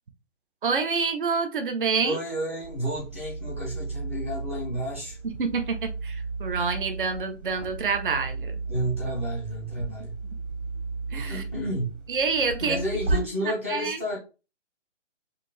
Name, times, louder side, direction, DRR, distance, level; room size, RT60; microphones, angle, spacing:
voice 1, 0.6-2.2 5.4-8.6 11.1-11.4 12.1-12.8 13.1-13.2 13.7-14.0, right 5 dB, 45° right, 0.8 m, -27 dB
voice 2, 2.0-5.2 8.7-10.1 11.3-12.0 12.6-14.2, equal, 10° right, 0.6 m, -31 dB
sound 1, 2.6-13.2, right 3 dB, 85° right, 2.4 m, -34 dB
5.0 x 2.8 x 3.1 m
hypercardioid pair, 175°, 36 cm